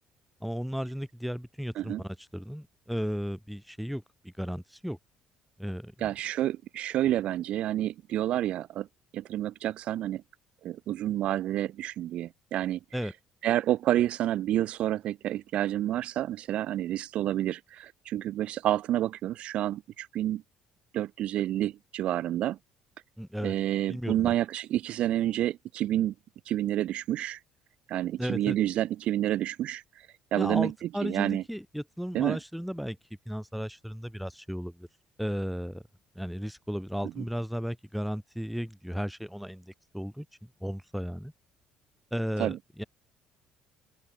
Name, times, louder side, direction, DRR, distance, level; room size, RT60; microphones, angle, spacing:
voice 1, 0.4-5.0 5.6-6.1 12.9-13.1 23.2-23.5 23.9-24.4 28.2-28.6 30.4-33.0 33.3-34.9 35.2-35.8 36.1-41.3 42.1-42.8, equal, ahead, 2.6 m, -35 dB
voice 2, 6.0-8.9 9.1-10.2 10.6-12.8 13.4-20.4 20.9-22.6 23.4-26.1 26.5-27.4 27.9-31.4 32.1-32.4 37.2-37.3 42.4-42.6, right 13 dB, 65° right, 0.6 m, -29 dB
open air
cardioid pair, 100°, 2 cm